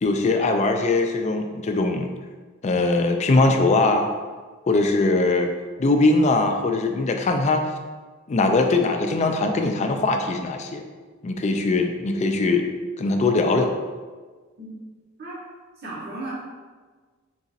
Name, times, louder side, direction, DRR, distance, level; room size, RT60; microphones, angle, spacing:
voice 1, 0.0-2.1 2.6-4.1 4.7-5.5 5.8-7.6 8.3-10.8 11.2-12.7 13.0-13.7, left 2 dB, 35° left, 5 dB, 0.3 m, -21 dB
voice 2, 15.8-16.3, right 2 dB, 50° right, -6 dB, 0.9 m, -35 dB
3.9 x 2.4 x 4.0 m, 1.4 s
head